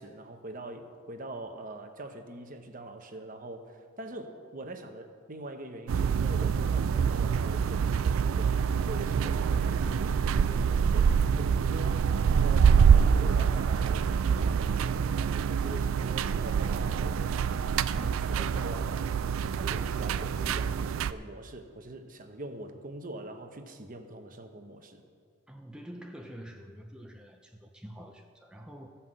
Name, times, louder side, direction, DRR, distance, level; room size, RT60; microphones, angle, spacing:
voice 1, 0.0-25.0, right 1 dB, 40° right, 6 dB, 0.9 m, -43 dB
sound 1, 5.9-21.1, right 6 dB, 80° right, 0.4 m, -26 dB
voice 2, 25.5-28.9, equal, 5° right, 2 dB, 0.5 m, -46 dB
14.5 x 5.7 x 7.6 m, 2.1 s
head